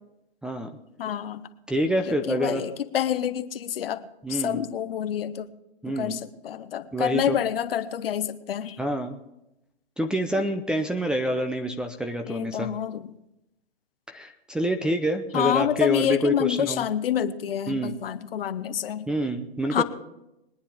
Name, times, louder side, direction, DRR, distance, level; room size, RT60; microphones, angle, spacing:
voice 1, 1.0-1.4 2.1-5.5 5.9-8.8 12.2-13.1 15.3-19.1 19.7-19.8, left 10 dB, 65° left, 11 dB, 1.0 m, -28 dB
voice 2, 1.7-2.6 4.2-4.6 5.8-6.2 6.9-7.4 8.8-9.2 10.0-12.7 14.1-16.9 17.7-17.9 19.1-19.8, equal, 5° right, 6 dB, 0.6 m, -27 dB
22.0 x 9.8 x 3.5 m, 0.89 s
hypercardioid pair, 130°, 31 cm